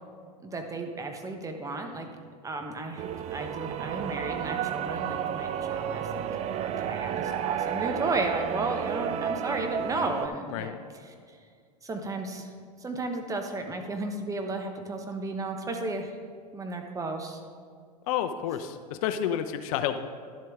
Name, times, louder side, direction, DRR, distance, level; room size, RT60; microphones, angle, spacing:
voice 1, 0.4-2.1 2.4-6.2 6.5-10.7 11.1-11.2 11.8-12.5 12.8-16.1 16.5-17.4, right 2 dB, 15° right, 4 dB, 0.9 m, -34 dB
sound 1, 3.0-10.3, right 9 dB, 30° right, 0.4 m, -32 dB
voice 2, 18.1-20.0, left 10 dB, 55° left, 9 dB, 0.6 m, -30 dB
11.5 x 7.5 x 3.6 m, 2.1 s
hypercardioid pair, 110°, 21 cm